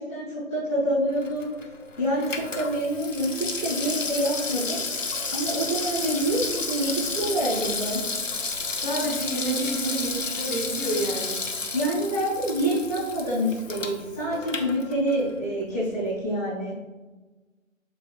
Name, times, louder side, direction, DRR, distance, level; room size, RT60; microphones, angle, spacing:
voice 1, 0.0-1.5 2.0-4.8 5.3-8.0 11.7-16.7, right 1 dB, 5° left, -15 dB, 2.1 m, -27 dB
Water tap faucet / Sink (filling or washing), 1.1-15.4 15.7-15.8, left 3 dB, 65° left, 1.0 m, -32 dB
voice 2, 8.7-11.4, right 1 dB, 40° left, -5 dB, 1.7 m, -29 dB
8.6 x 6.4 x 2.4 m, 1.2 s
figure-of-eight pair, 175°, 41 cm